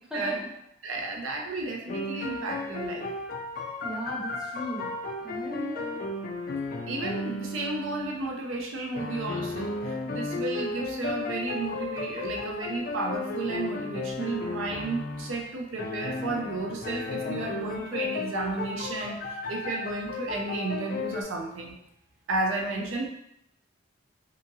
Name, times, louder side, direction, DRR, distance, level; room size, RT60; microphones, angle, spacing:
voice 1, 0.1-0.4 0.8-3.1 6.9-21.7 22.3-23.1, right 2 dB, 70° right, 0 dB, 0.4 m, -33 dB
sound 1, 1.9-8.3 9.0-15.4 15.8-21.2, left 3 dB, 40° left, 0.3 m, -34 dB
voice 2, 3.8-4.9 5.2-6.0, equal, 5° right, -7 dB, 0.7 m, -36 dB
2.8 x 2.6 x 2.6 m, 0.79 s
head